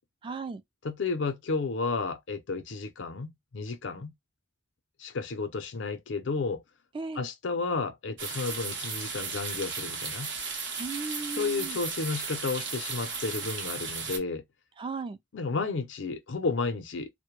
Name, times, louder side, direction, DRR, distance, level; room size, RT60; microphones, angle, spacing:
voice 1, 0.2-0.6 6.9-7.3 10.8-11.8 14.8-15.2, right 4 dB, 30° right, 0.3 m, -36 dB
voice 2, 0.8-4.1 5.0-6.6 7.2-10.3 11.4-14.4 15.3-17.1, left 4 dB, 85° left, 0.5 m, -32 dB
sound 1, 8.2-14.2, right 5 dB, 80° right, 0.7 m, -35 dB
2.1 x 2.1 x 2.9 m
head